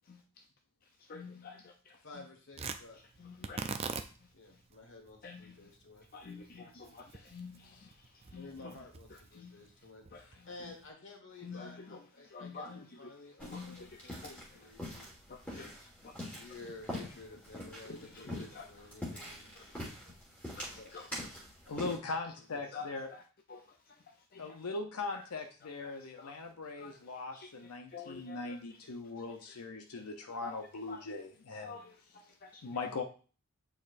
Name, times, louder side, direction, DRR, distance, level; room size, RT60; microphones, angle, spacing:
voice 1, 1.0-2.2 3.2-3.9 4.2-4.6 5.2-5.7 6.1-8.7 9.3-9.6 10.1-10.7 11.4-12.0 12.2-13.1 13.4-14.7 15.0-15.7 16.0-16.1 17.8-18.9 19.5-19.8 20.6-21.1 21.3-21.4 22.7-23.2 23.5-23.6 24.3-24.6 25.1-25.2 25.8-26.3 26.8-27.0 27.3-28.6 30.4-30.6 30.9-31.0 31.5-32.8, left 4 dB, 40° left, 2 dB, 0.5 m, -49 dB
voice 2, 2.0-3.0 4.3-6.1 8.3-15.1 16.3-20.1 20.7-21.0 22.4-22.7, left 3 dB, 55° left, 3 dB, 1.4 m, -52 dB
Tearing, 2.5-10.9, right 5 dB, 25° right, 0.3 m, -45 dB
voice 3, 7.1-7.9 21.7-23.1 24.4-31.8 32.6-33.0, left 3 dB, 85° left, 5 dB, 0.7 m, -40 dB
sound 1, 13.4-22.0, left 1 dB, 5° left, 1.5 m, -45 dB
8.4 x 4.4 x 2.5 m, 0.39 s
head